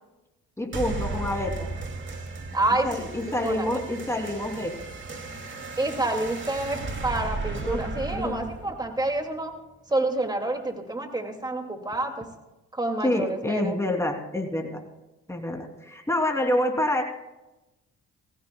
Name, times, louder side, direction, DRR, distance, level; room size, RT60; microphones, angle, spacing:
voice 1, 0.6-1.7 2.8-4.8 7.6-8.5 13.0-14.8 15.3-17.0, left 1 dB, 10° left, 2 dB, 3.0 m, -27 dB
sound 1, 0.7-9.7, right 3 dB, 40° right, 2.6 m, -35 dB
voice 2, 2.5-3.1 3.4-3.8 5.8-9.5 9.9-12.3 12.7-13.7, right 2 dB, 15° right, 4 dB, 2.3 m, -28 dB
20.5 x 16.5 x 2.3 m, 0.99 s
cardioid pair, 90°, 30 cm